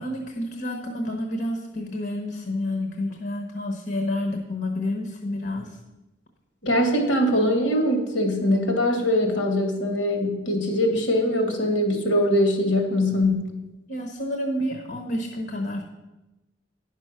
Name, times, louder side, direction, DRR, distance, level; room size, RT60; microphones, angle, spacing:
voice 1, 0.0-5.8 13.9-15.8, left 1 dB, 55° left, 3 dB, 1.1 m, -29 dB
voice 2, 6.6-13.5, left 1 dB, 85° left, 3 dB, 2.1 m, -22 dB
10.0 x 6.2 x 5.8 m, 1.0 s
head